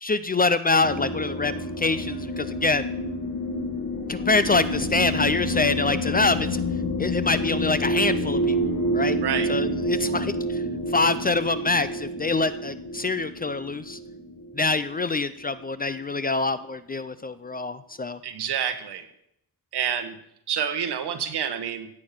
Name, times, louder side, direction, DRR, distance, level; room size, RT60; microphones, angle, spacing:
voice 1, 0.0-2.9 4.1-6.6 7.0-8.6 8.9-9.2 9.5-10.6 10.9-14.0 14.5-18.2, left 3 dB, 25° left, 13 dB, 0.4 m, -25 dB
sound 1, 0.8-15.4, equal, 55° left, 1.8 m, -28 dB
voice 2, 18.2-19.0 19.7-20.2 20.5-21.9, right 8 dB, 80° right, 8 dB, 1.6 m, -28 dB
15.5 x 8.5 x 6.0 m, 0.75 s
wide cardioid pair, 175°, 40 cm